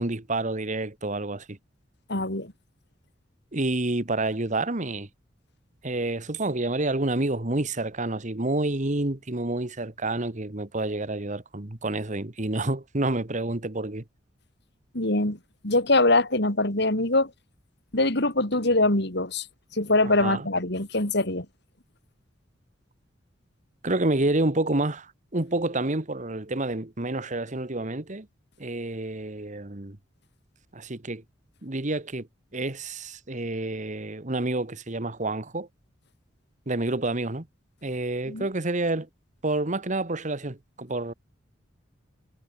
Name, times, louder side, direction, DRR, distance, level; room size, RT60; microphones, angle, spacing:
voice 1, 0.0-1.6 3.5-5.1 5.8-14.0 20.0-20.5 23.8-28.3 28.6-30.0 30.7-31.2 31.6-32.3 32.5-35.7 36.7-37.5 37.8-39.1 39.4-41.1, right 2 dB, 40° right, 1.6 m, -28 dB
voice 2, 2.1-2.5 14.9-15.4 15.6-17.3 17.9-19.4 19.7-21.4 38.3-38.4, left 2 dB, 60° left, 5.0 m, -23 dB
head